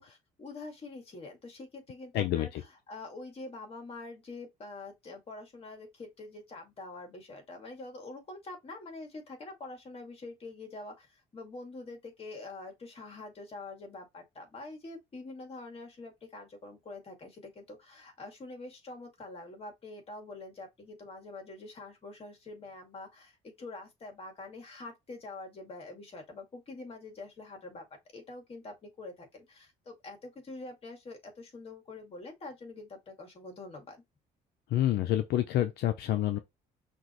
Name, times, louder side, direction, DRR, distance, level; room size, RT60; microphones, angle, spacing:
voice 1, 0.4-27.9 28.1-34.0, left 2 dB, 35° left, 2.3 m, -45 dB
voice 2, 2.1-2.6 34.7-36.4, left 13 dB, 75° left, 0.6 m, -28 dB
5.8 x 2.9 x 3.1 m
cardioid pair, 110°, 17 cm